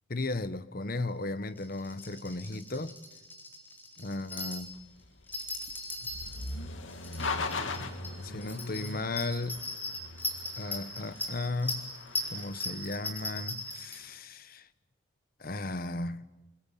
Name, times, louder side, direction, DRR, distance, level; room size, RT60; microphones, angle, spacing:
voice 1, 0.1-2.9 4.0-4.7 8.2-9.7 10.6-11.9 12.3-14.7 15.4-16.3, left 2 dB, 50° left, 1.2 m, -35 dB
sound 1, 1.6-4.8 5.3-6.6 6.9-7.8 8.0-8.1 8.4-14.0, left 2 dB, 10° left, 4.0 m, -39 dB
sound 2, 4.7-13.9, left 3 dB, 90° left, 2.3 m, -40 dB
29.0 x 20.5 x 9.2 m
head